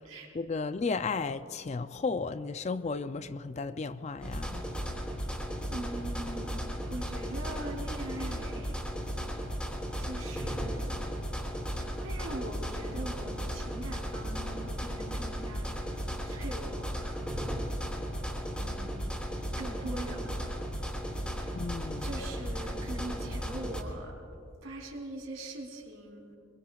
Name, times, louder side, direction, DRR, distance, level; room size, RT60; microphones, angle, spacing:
voice 1, 0.3-4.7 21.5-22.1, left 4 dB, 35° left, 0.4 m, -34 dB
sound 1, 4.2-23.8, equal, 5° left, 2.6 m, -35 dB
voice 2, 5.7-6.6 6.9-8.8 10.0-11.0 11.8-17.8 18.6-19.1 19.6-20.6 21.2-21.6 22.0-24.1 24.6-26.3, right 1 dB, 90° right, 3.8 m, -42 dB
25.5 x 22.0 x 2.4 m
head